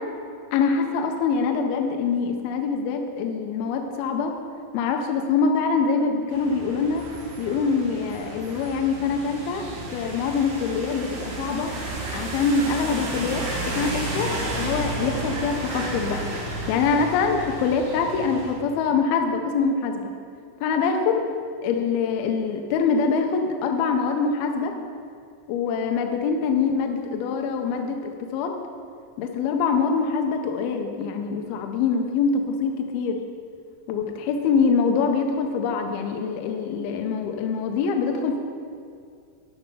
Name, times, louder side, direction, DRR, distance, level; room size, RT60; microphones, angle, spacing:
voice 1, 0.5-4.3 4.7-7.0 7.4-9.6 9.9-11.7 12.1-16.3 16.7-20.1 20.6-21.2 21.6-24.7 25.5-28.6 29.2-33.2 33.9-38.4, left 5 dB, 80° left, 4 dB, 2.2 m, -24 dB
sound 1, 6.3-18.5, right 2 dB, 85° right, 4.4 m, -32 dB
12.5 x 5.6 x 5.5 m, 2.3 s
omnidirectional pair, 5.3 m